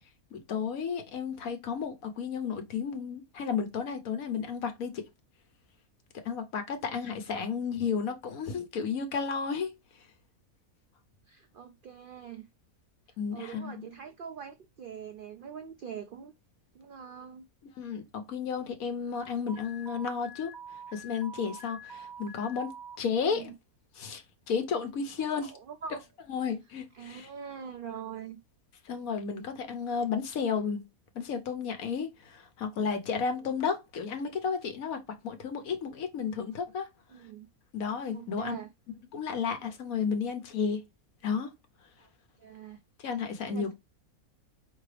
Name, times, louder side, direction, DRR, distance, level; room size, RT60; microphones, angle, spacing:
voice 1, 0.3-5.0 6.2-9.7 13.2-13.8 17.8-20.6 20.9-22.7 23.0-23.5 24.0-25.5 26.3-27.3 28.9-30.8 31.1-36.9 37.7-38.5 39.1-40.8 41.2-41.5 43.0-43.7, left 6 dB, 75° left, 1.3 m, -32 dB
voice 2, 7.0-7.5 11.3-12.5 13.3-16.3 16.7-17.5 23.2-23.5 25.2-26.0 26.9-28.4 33.4-33.5 37.1-37.5 38.1-38.7 42.0-42.1 42.4-42.8 43.4-43.7, right 7 dB, 80° right, 0.4 m, -43 dB
Alarm, 19.5-23.0, right 2 dB, 35° right, 1.0 m, -46 dB
4.8 x 3.2 x 3.2 m
omnidirectional pair, 1.5 m